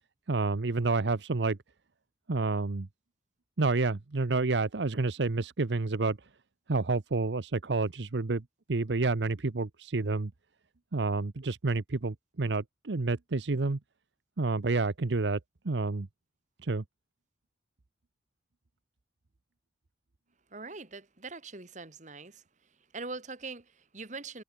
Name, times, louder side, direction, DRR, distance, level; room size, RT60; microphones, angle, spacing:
voice 1, 0.3-1.6 2.3-2.9 3.6-6.2 6.7-8.4 8.7-10.3 10.9-13.8 14.4-15.4 15.6-16.1 16.6-16.8, right 3 dB, 90° right, 0.9 m, -29 dB
voice 2, 20.5-22.4 22.9-24.4, right 3 dB, 45° right, 2.0 m, -42 dB
head